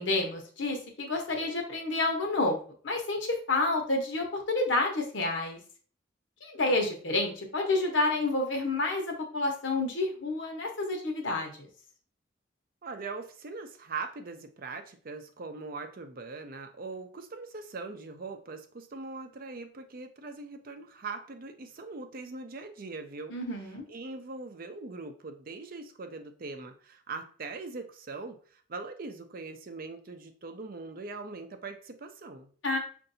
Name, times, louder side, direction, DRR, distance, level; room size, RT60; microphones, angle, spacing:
voice 1, 0.0-2.6 2.8-3.2 3.5-5.6 6.4-11.7 23.3-23.8 32.6-32.8, left 2 dB, 80° left, 2 dB, 1.0 m, -29 dB
voice 2, 12.8-23.3 23.9-32.5, right 3 dB, 50° right, 6 dB, 0.5 m, -41 dB
5.5 x 2.6 x 2.6 m, 0.44 s
head